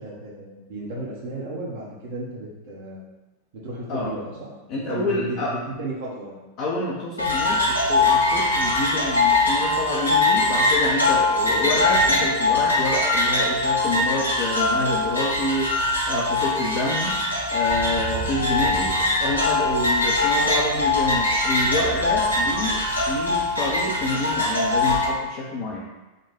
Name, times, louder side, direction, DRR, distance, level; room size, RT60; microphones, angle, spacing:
voice 1, 0.0-3.0 3.5-6.4 11.4-11.7 22.4-22.6, right 2 dB, 55° right, -4 dB, 0.9 m, -34 dB
voice 2, 4.7-5.5 6.6-17.2 17.5-22.8 23.1-25.8, left 2 dB, 45° left, -5 dB, 0.6 m, -28 dB
sound 1, 7.2-25.1, left 2 dB, 85° left, 0.8 m, -22 dB
sound 2, 17.7-24.7, right 6 dB, 35° right, 0.4 m, -37 dB
3.7 x 2.3 x 4.3 m, 1.1 s
figure-of-eight pair, 90°, 0 cm